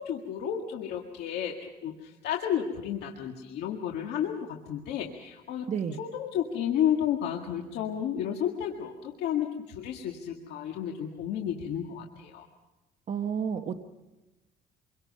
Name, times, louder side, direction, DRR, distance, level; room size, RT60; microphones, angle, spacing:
voice 1, 0.0-4.4 4.7-5.7 6.0-12.4, left 9 dB, 75° left, 2 dB, 2.0 m, -32 dB
voice 2, 5.7-6.0 13.1-13.9, right 7 dB, 45° right, 6 dB, 1.2 m, -31 dB
26.5 x 23.0 x 5.5 m, 1.1 s
cardioid pair, 110°, 17 cm